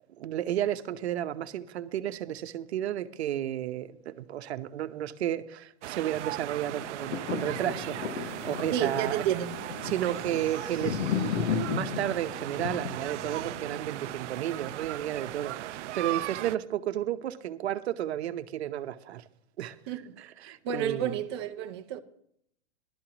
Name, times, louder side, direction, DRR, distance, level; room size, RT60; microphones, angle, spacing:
voice 1, 0.2-9.2 9.8-19.2 19.6-19.8 20.2-21.2, right 11 dB, 65° right, 0.9 m, -32 dB
sound 1, 5.8-16.6, right 15 dB, 85° right, 0.5 m, -38 dB
sound 2, 6.7-15.0 15.5-15.6, left 9 dB, 75° left, 1.1 m, -35 dB
sound 3, 7.0-13.9, left 2 dB, 45° left, 3.3 m, -54 dB
voice 2, 8.7-9.6 19.9-20.1 20.5-22.0, right 10 dB, 25° right, 0.6 m, -30 dB
16.5 x 12.5 x 2.9 m
supercardioid pair, 170°, 34 cm